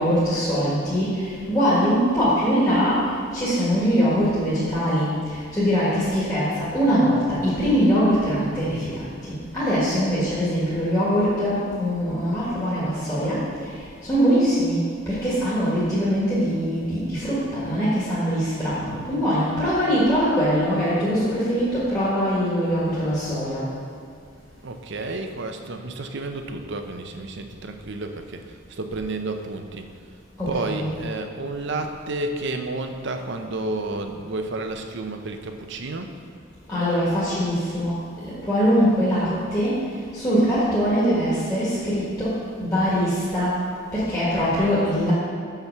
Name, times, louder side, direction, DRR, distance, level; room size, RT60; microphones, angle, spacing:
voice 1, 0.0-3.0 3.3-8.9 9.3-13.4 14.0-14.8 15.1-23.6 30.4-30.9 36.7-37.9 38.2-39.8 40.1-42.3 42.6-43.6 43.9-45.1, equal, 15° left, -11 dB, 1.8 m, -22 dB
voice 2, 24.6-29.9 30.5-36.1, right 2 dB, 60° right, 5 dB, 0.7 m, -31 dB
6.0 x 5.8 x 6.7 m, 2.4 s
head